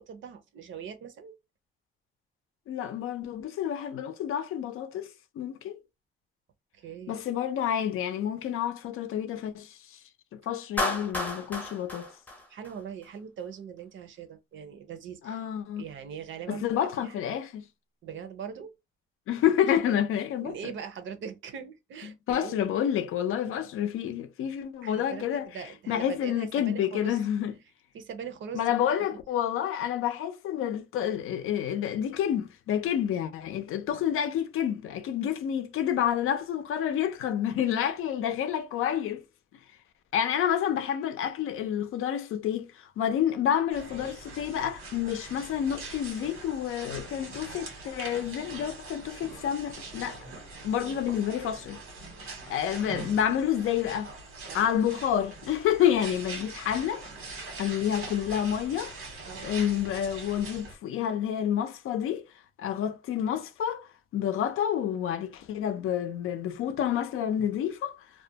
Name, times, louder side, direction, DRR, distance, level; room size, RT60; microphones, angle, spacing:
voice 1, 0.0-1.3 6.7-7.2 12.5-15.4 15.8-17.2 18.0-18.7 20.4-22.6 24.8-27.2 27.9-28.7 29.1-29.2 50.8-51.0 54.5-54.7 59.2-59.6, right 7 dB, 65° right, 0.6 m, -41 dB
voice 2, 2.7-5.8 7.1-10.0 10.3-12.1 15.2-15.8 16.5-17.6 19.3-20.7 22.3-25.5 25.9-27.5 28.5-39.2 40.1-50.2 50.6-51.8 52.5-54.1 54.5-57.1 57.6-58.9 59.4-62.3 62.6-63.9 64.1-67.9, left 9 dB, 80° left, 0.5 m, -29 dB
Clapping, 10.8-13.1, left 1 dB, 10° left, 0.6 m, -33 dB
sound 1, 43.7-60.7, right 3 dB, 90° right, 1.2 m, -43 dB
2.4 x 2.1 x 2.7 m
cardioid pair, 125°, 21 cm